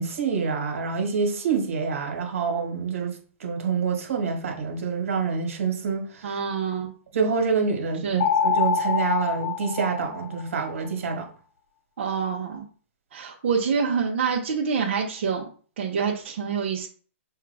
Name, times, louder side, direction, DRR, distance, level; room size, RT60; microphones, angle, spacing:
voice 1, 0.0-3.1 3.4-6.4 7.1-11.3, right 5 dB, 75° right, 1.5 m, -27 dB
voice 2, 6.2-6.9 8.0-8.3 12.0-12.6 13.1-15.4 15.8-16.9, right 6 dB, 55° right, 0.8 m, -26 dB
sound 1, 8.2-10.7, left 7 dB, 80° left, 0.8 m, -25 dB
5.5 x 2.4 x 3.4 m
hypercardioid pair, 165°, 7 cm